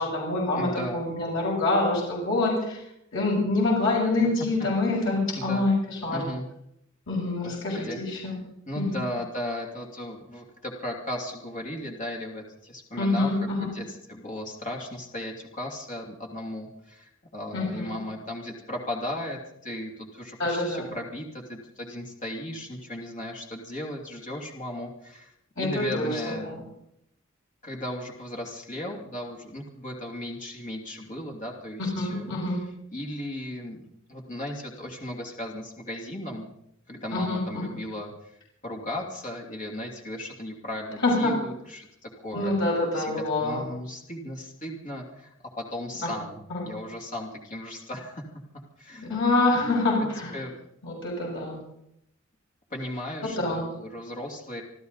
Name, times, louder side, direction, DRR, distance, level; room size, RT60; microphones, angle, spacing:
voice 1, 0.0-2.8 3.1-6.2 7.1-8.4 8.8-9.0 13.0-13.7 17.5-18.0 20.4-20.9 25.6-26.6 31.8-32.6 37.1-37.8 41.0-41.3 42.3-43.6 46.5-46.6 49.1-50.4 50.8-51.6 53.4-53.6, left 2 dB, 65° left, -4 dB, 7.4 m, -26 dB
voice 2, 0.6-1.0 5.0-5.7 6.1-6.4 7.4-8.3 8.7-13.3 13.6-26.5 27.6-32.3 32.9-33.8 34.1-36.5 36.9-42.5 42.9-48.2 48.8-49.1 49.5-50.5 52.7-54.6, left 1 dB, 40° left, 1 dB, 2.9 m, -36 dB
26.0 x 13.5 x 4.1 m, 0.76 s
head